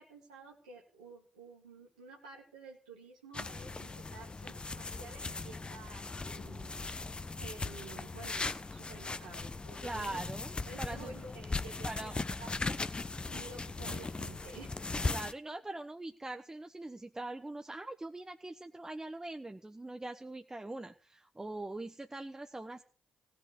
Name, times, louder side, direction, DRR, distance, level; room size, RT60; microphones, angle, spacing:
voice 1, 0.0-6.9 7.4-10.2 10.7-13.0 13.3-15.2, right 3 dB, 90° right, -3 dB, 2.0 m, -51 dB
sound 1, 3.3-15.3, left 3 dB, 30° left, 1.1 m, -38 dB
voice 2, 9.8-10.5 10.8-11.2 11.8-12.1 15.1-22.8, right 2 dB, 15° right, 6 dB, 1.1 m, -42 dB
17.0 x 6.4 x 9.6 m, 0.40 s
hypercardioid pair, 40°, 4 cm